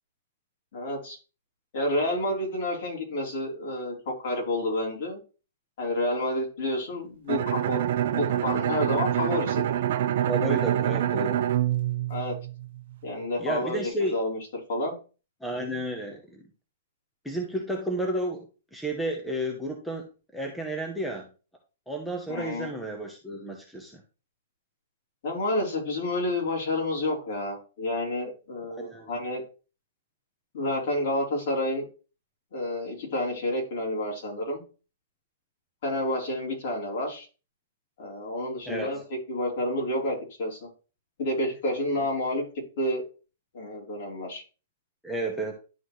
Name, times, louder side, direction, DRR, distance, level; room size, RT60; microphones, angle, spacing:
voice 1, 0.7-1.2 1.7-5.2 5.8-7.8 8.1-9.6 12.1-12.4 13.0-14.9 22.3-22.7 25.2-29.4 30.5-31.9 32.5-34.6 35.8-37.3 38.0-39.0 39.3-40.7 41.2-42.4 42.8-43.0 43.5-44.4, left 1 dB, 50° left, -1 dB, 3.6 m, -29 dB
Bowed string instrument, 7.3-13.0, right 11 dB, 55° right, 0.6 m, -26 dB
voice 2, 10.3-11.4 13.4-14.2 15.4-16.4 17.2-18.5 18.7-20.1 20.3-21.3 21.9-24.0 28.8-29.1 38.7-38.9 45.0-45.5, right 1 dB, ahead, 2 dB, 0.8 m, -31 dB
11.0 x 4.0 x 3.2 m, 0.34 s
hypercardioid pair, 160°, 0 cm